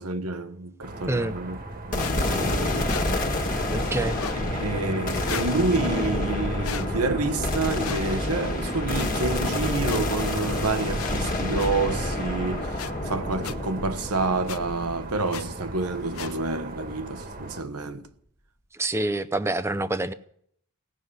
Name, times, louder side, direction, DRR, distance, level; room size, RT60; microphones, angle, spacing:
voice 1, 0.0-1.6 1.9-3.0 4.4-18.1, right 3 dB, 90° right, 1.2 m, -29 dB
sound 1, 0.8-17.6, right 2 dB, 40° right, 1.5 m, -39 dB
sound 2, 1.9-16.2, left 1 dB, 40° left, 1.7 m, -28 dB
sound 3, 2.0-2.2 2.9-3.1 4.1-4.4 5.2-5.5 6.6-6.9 7.8-8.0 9.0-9.1 9.9-10.0 11.0-11.1 11.6-11.7 12.8-12.9 13.4-13.5 14.5-14.6 15.3-15.4 16.1-16.3, left 8 dB, 75° left, 0.7 m, -35 dB
voice 2, 3.7-4.2 18.8-20.1, right 2 dB, 10° right, 0.6 m, -26 dB
18.0 x 6.7 x 9.6 m
head